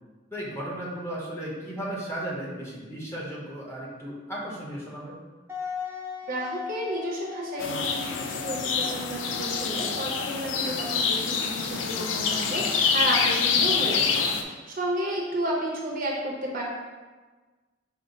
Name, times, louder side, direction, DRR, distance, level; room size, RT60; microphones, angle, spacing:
voice 1, 0.3-5.2, right 1 dB, 15° left, -5 dB, 0.9 m, -35 dB
Wind instrument woodwind instrument, 5.5-11.1, left 6 dB, 15° right, 0.5 m, -39 dB
voice 2, 6.3-16.6, right 1 dB, 50° right, -3 dB, 0.8 m, -32 dB
sound 1, 7.6-14.4, left 6 dB, 70° left, 0.4 m, -26 dB
5.4 x 2.1 x 3.9 m, 1.3 s
head